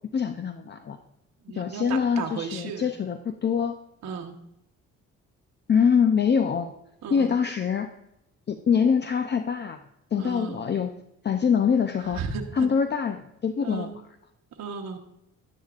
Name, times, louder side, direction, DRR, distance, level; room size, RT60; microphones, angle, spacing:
voice 1, 0.1-1.0 1.5-3.7 5.7-6.7 7.1-7.9 8.5-9.8 10.1-10.9 11.2-12.2 12.5-13.9, left 6 dB, 35° left, 8 dB, 0.6 m, -24 dB
voice 2, 1.4-2.9 4.0-4.3 7.0-7.4 10.2-10.7 12.1-12.7 13.6-14.0 14.6-15.0, right 5 dB, 60° right, 2 dB, 1.2 m, -34 dB
10.5 x 10.5 x 2.5 m, 0.83 s
cardioid pair, 90°, 30 cm